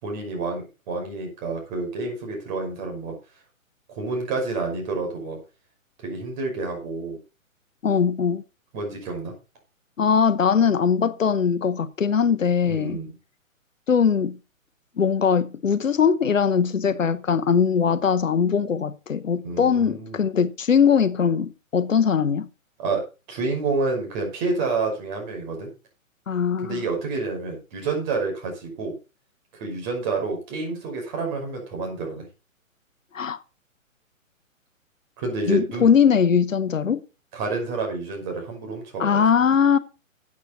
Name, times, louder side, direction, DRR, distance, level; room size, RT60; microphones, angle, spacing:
voice 1, 0.0-3.1 3.9-5.4 6.0-7.2 8.7-9.3 12.6-13.1 19.4-20.2 22.8-23.0 23.3-25.7 26.6-28.9 29.5-32.2 35.2-35.9 37.3-39.2, right 3 dB, 35° right, 5.7 m, -29 dB
voice 2, 7.8-8.4 10.0-13.0 13.9-14.4 15.0-22.5 26.3-26.8 33.1-33.4 35.5-37.0 39.0-39.8, left 7 dB, 70° left, 1.0 m, -21 dB
12.5 x 8.6 x 4.2 m
figure-of-eight pair, 125°, 41 cm